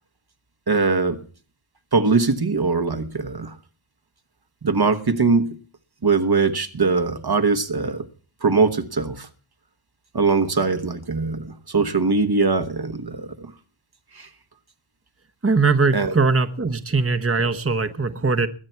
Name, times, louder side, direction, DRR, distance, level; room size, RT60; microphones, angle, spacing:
voice 1, 0.7-1.2 1.9-3.6 4.6-5.5 6.0-8.0 8.4-9.3 10.1-13.5 14.1-14.3 15.9-16.1, right 4 dB, 50° right, 1.2 m, -21 dB
voice 2, 15.4-18.5, right 4 dB, 25° right, 1.1 m, -20 dB
21.5 x 8.8 x 4.6 m
wide cardioid pair, 55°, 49 cm